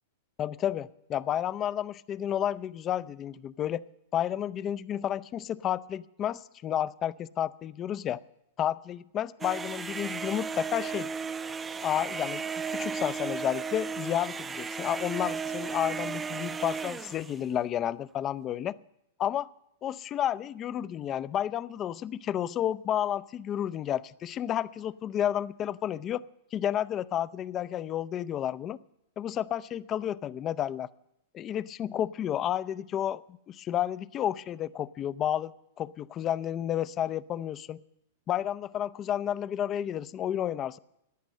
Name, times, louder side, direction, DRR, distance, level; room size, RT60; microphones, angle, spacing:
voice 1, 0.4-3.8 4.1-8.2 8.6-11.1 11.8-18.7 19.2-19.5 19.8-26.2 26.5-28.8 29.2-30.9 31.3-35.5 35.8-37.8 38.3-40.8, left 10 dB, 30° left, 18 dB, 0.5 m, -31 dB
sound 1, 9.4-17.4, right 5 dB, 15° right, 0.6 m, -35 dB
15.0 x 10.5 x 6.5 m, 0.81 s
hypercardioid pair, 115°, 0 cm